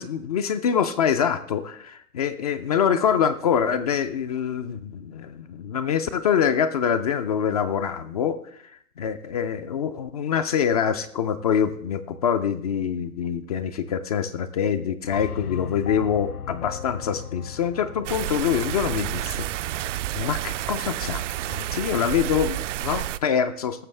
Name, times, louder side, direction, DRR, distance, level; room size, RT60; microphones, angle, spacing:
voice 1, 0.0-8.4 9.0-19.5 20.1-23.8, left 8 dB, 30° left, 10 dB, 0.4 m, -25 dB
sound 1, 15.1-19.3, left 8 dB, 90° left, 0.6 m, -37 dB
sound 2, 18.1-23.2, right 13 dB, 60° right, 0.5 m, -30 dB
17.5 x 6.8 x 3.3 m, 0.66 s
hypercardioid pair, 115°, 43 cm